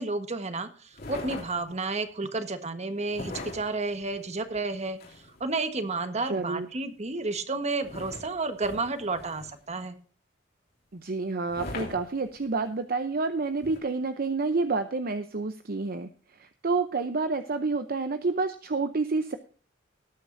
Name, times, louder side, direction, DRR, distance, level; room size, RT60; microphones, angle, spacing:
voice 1, 0.0-5.0 5.4-10.0, right 3 dB, 35° right, 9 dB, 1.4 m, -31 dB
sound 1, 0.9-1.9 3.1-5.5 7.8-9.8 11.5-12.7 13.6-13.8, left 2 dB, 55° left, 3.4 m, -41 dB
voice 2, 6.3-6.7 10.9-19.4, right 3 dB, 50° right, 9 dB, 0.7 m, -29 dB
19.0 x 9.0 x 2.7 m, 0.41 s
head